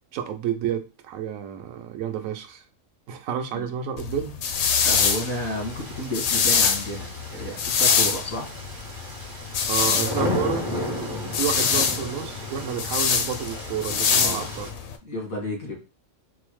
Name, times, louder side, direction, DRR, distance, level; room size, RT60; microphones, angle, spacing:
voice 1, 0.1-2.6 3.1-4.4 9.7-14.7, right 9 dB, 80° right, 1.0 m, -30 dB
sound 1, 4.0-14.9, left 6 dB, 65° left, 0.7 m, -24 dB
sound 2, 4.5-14.7, left 1 dB, 35° right, 0.3 m, -34 dB
voice 2, 4.8-8.6 9.9-10.1 11.1-11.3 14.2-14.5 15.0-15.8, equal, 90° left, 2.1 m, -32 dB
4.4 x 2.1 x 3.0 m
omnidirectional pair, 1.4 m